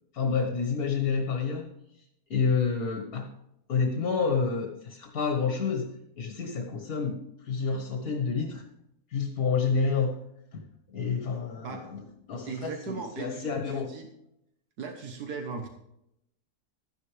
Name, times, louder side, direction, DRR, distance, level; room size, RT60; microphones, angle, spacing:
voice 1, 0.1-1.7 2.3-3.3 3.7-8.6 9.1-10.2 10.5-10.6 10.9-14.0, left 5 dB, 65° left, 3 dB, 1.8 m, -29 dB
voice 2, 12.4-14.1 14.8-15.7, right 5 dB, 80° right, 4 dB, 1.6 m, -38 dB
12.5 x 11.0 x 3.3 m, 0.80 s
omnidirectional pair, 1.7 m